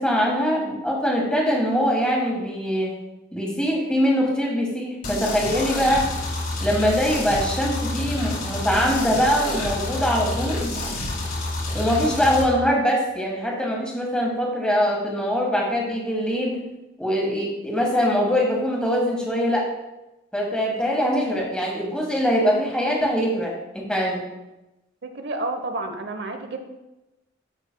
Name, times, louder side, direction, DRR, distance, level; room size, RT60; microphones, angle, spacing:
voice 1, 0.0-2.9 3.3-6.0 6.6-10.6 11.7-16.5 17.0-19.6 20.3-24.2, equal, 5° left, -2 dB, 1.5 m, -23 dB
sound 1, 5.0-12.4, left 2 dB, 50° left, 1.9 m, -28 dB
voice 2, 25.0-26.6, right 2 dB, 60° right, 6 dB, 0.9 m, -30 dB
12.0 x 5.9 x 2.2 m, 0.99 s
head